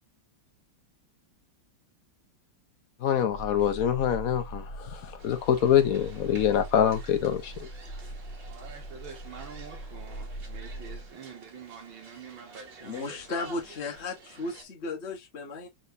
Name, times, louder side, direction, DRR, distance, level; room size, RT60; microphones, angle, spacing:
voice 1, 3.0-7.7, left 9 dB, 65° left, 0.9 m, -25 dB
sound 1, 3.3-11.1, right 1 dB, 25° left, 1.5 m, -41 dB
sound 2, 5.2-14.6, right 3 dB, 70° right, 2.5 m, -50 dB
voice 2, 8.5-13.5 13.8-14.6, right 6 dB, 85° right, 2.2 m, -47 dB
voice 3, 12.8-15.7, left 3 dB, 40° left, 1.1 m, -35 dB
4.5 x 4.2 x 2.5 m
omnidirectional pair, 2.1 m